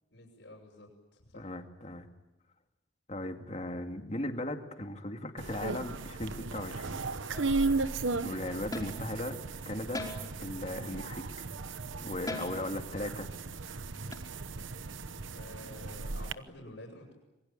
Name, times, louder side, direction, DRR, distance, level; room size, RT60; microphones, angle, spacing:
voice 1, 0.1-1.5 15.3-17.1, left 1 dB, 70° left, -6 dB, 6.7 m, -50 dB
voice 2, 1.3-2.1 3.1-7.1 8.2-9.4 9.7-10.0 10.4-11.5 12.0-13.3, left 1 dB, 35° left, 5 dB, 2.3 m, -37 dB
sound 1, 5.4-16.3, right 3 dB, 80° right, 1.0 m, -36 dB
sound 2, 7.3-7.7 8.7-9.1 9.9-10.5 12.3-12.8 14.1-14.2, left 1 dB, 20° left, 4.8 m, -40 dB
26.5 x 23.0 x 9.0 m, 0.97 s
head